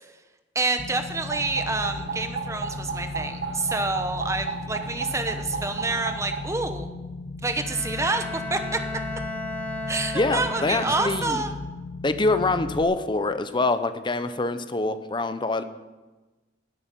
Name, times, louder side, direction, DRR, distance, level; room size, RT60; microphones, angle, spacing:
voice 1, 0.5-6.9 7.4-8.8 9.9-11.5, right 3 dB, 15° right, 7 dB, 1.0 m, -28 dB
sound 1, 0.8-12.8, left 3 dB, 55° left, 0.8 m, -36 dB
sound 2, 1.3-6.5, right 5 dB, 75° right, 0.9 m, -34 dB
Bowed string instrument, 7.6-11.5, left 2 dB, 10° left, 1.7 m, -35 dB
voice 2, 10.1-11.4 12.0-15.6, left 2 dB, 25° left, 11 dB, 0.7 m, -25 dB
10.0 x 7.9 x 9.1 m, 1.2 s
head